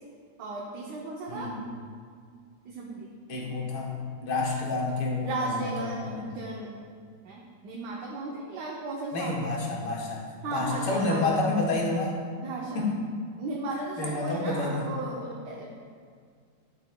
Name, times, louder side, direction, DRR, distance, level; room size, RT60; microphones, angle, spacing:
voice 1, 0.4-1.5 2.6-3.1 5.2-6.8 7.2-9.4 10.4-11.5 12.4-12.9 13.4-15.8, right 3 dB, 75° right, -2 dB, 1.3 m, -35 dB
voice 2, 3.3-6.3 9.1-10.2 10.5-12.1 12.8-12.9 14.0-14.9, left 3 dB, 75° left, -2 dB, 1.8 m, -29 dB
11.0 x 5.9 x 2.2 m, 2.1 s
omnidirectional pair, 1.9 m